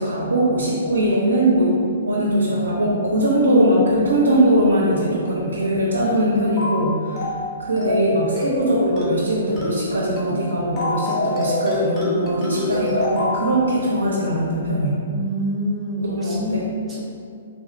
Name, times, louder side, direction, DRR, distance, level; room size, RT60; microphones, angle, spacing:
voice 1, 0.0-1.8 2.0-7.3 7.6-14.9 16.0-16.7, right 1 dB, 80° right, -5 dB, 0.6 m, -20 dB
sound 1, 6.6-6.8 7.2-7.4 7.8-8.1 8.4-8.6 9.0-9.2 9.6-9.8 10.2-10.4 10.8-13.4, left 2 dB, 20° left, 0.9 m, -25 dB
voice 2, 15.1-17.0, equal, 15° right, -5 dB, 0.7 m, -26 dB
3.6 x 2.8 x 2.6 m, 2.3 s
figure-of-eight pair, 120°, 0 cm